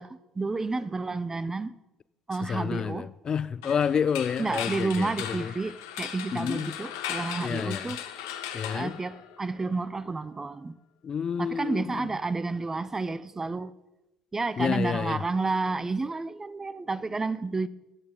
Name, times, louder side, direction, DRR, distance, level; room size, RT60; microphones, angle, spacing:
voice 1, 0.0-1.7 2.3-3.1 4.4-8.1 8.7-10.7 11.4-13.7 14.3-17.7, right 3 dB, 20° right, 0.8 m, -31 dB
voice 2, 2.5-5.5 6.3-6.8 7.4-7.9 8.5-9.0 11.0-12.1 14.6-15.2, left 7 dB, 40° left, 0.4 m, -29 dB
sound 1, 3.6-9.6, left 10 dB, 75° left, 1.5 m, -37 dB
21.0 x 8.9 x 5.5 m
hypercardioid pair, 60°, 2 cm